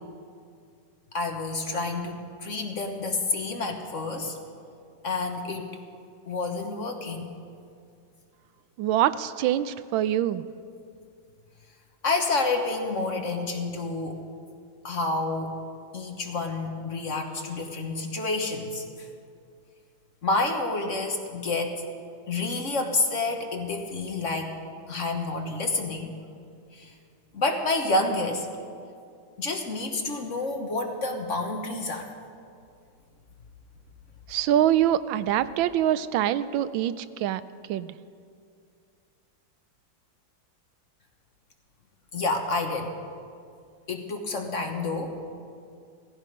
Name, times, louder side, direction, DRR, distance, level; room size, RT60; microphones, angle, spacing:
voice 1, 1.1-4.4 5.0-5.8 6.3-7.3 12.0-14.2 14.8-15.6 15.9-19.1 20.2-21.8 22.3-24.6 24.9-26.1 26.7-26.9 27.3-28.5 29.4-32.1 42.1-42.9 43.9-45.2, left 3 dB, 45° left, 3 dB, 1.3 m, -29 dB
voice 2, 8.8-10.4 34.3-37.4 37.7-37.9, right 11 dB, 85° right, 15 dB, 1.3 m, -24 dB
16.5 x 15.5 x 5.2 m, 2.3 s
omnidirectional pair, 2.1 m